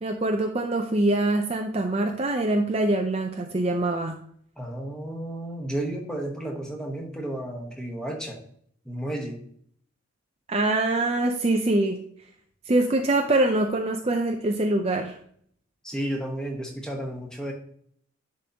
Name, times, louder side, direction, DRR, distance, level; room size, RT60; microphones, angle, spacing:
voice 1, 0.0-4.2 10.5-12.0 12.7-15.2, right 2 dB, 30° right, 3 dB, 0.5 m, -24 dB
voice 2, 4.6-8.4 8.8-9.4 15.8-17.5, right 1 dB, 5° left, 1 dB, 1.1 m, -32 dB
10.5 x 3.9 x 2.8 m, 0.62 s
head